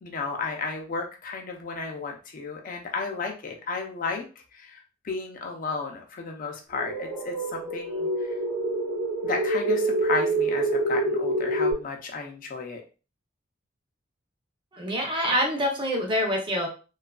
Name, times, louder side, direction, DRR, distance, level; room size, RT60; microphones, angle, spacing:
voice 1, 0.0-4.3 4.5-4.8 5.0-8.4 9.2-12.8, left 4 dB, 45° left, 2 dB, 0.4 m, -33 dB
sound 1, 6.7-11.7, right 1 dB, 50° right, 1.0 m, -26 dB
voice 2, 14.7-16.7, equal, 25° right, 0 dB, 0.6 m, -26 dB
2.7 x 2.3 x 2.2 m, 0.34 s
head